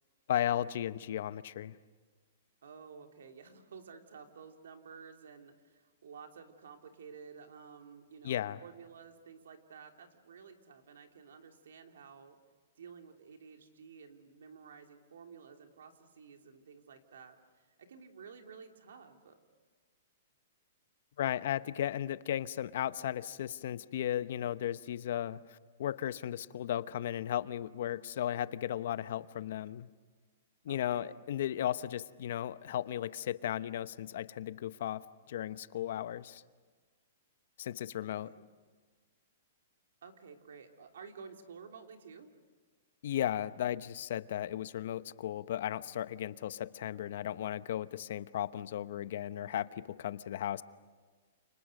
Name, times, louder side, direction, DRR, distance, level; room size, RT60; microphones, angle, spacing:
voice 1, 0.3-1.8 8.2-8.6 21.2-29.9 30.6-36.4 37.6-38.3 43.0-50.6, left 11 dB, 60° left, 15 dB, 0.8 m, -35 dB
voice 2, 2.6-12.4 12.8-19.4 30.7-31.2 38.2-38.4 40.0-42.3, right 6 dB, 80° right, 4 dB, 3.0 m, -52 dB
29.5 x 27.5 x 6.6 m, 1.4 s
hypercardioid pair, 155°, 0 cm